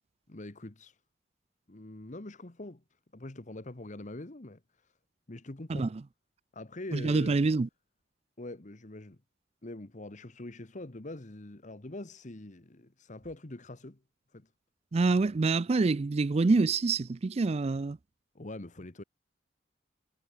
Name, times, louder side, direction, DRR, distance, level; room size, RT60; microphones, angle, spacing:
voice 1, 0.3-1.0 1.7-2.8 3.1-4.9 5.3-5.9 6.5-7.4 8.4-9.2 9.6-14.0 14.3-14.5 18.3-19.0, left 2 dB, 45° left, 1.3 m, -44 dB
voice 2, 6.9-7.7 14.9-18.0, right 3 dB, 35° right, 0.4 m, -26 dB
head